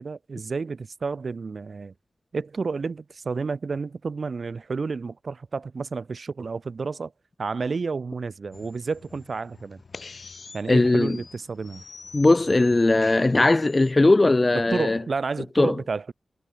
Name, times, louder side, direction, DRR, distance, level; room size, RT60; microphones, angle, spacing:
voice 1, 0.0-1.9 2.3-7.1 7.4-9.8 10.5-11.8 14.7-16.1, right 4 dB, 50° right, 6.1 m, -30 dB
sound 1, 8.5-13.9, left 4 dB, 50° left, 3.0 m, -46 dB
voice 2, 10.7-11.2 12.1-15.0 15.6-15.8, left 2 dB, 25° left, 0.5 m, -19 dB
wide cardioid pair, 145°, 0 cm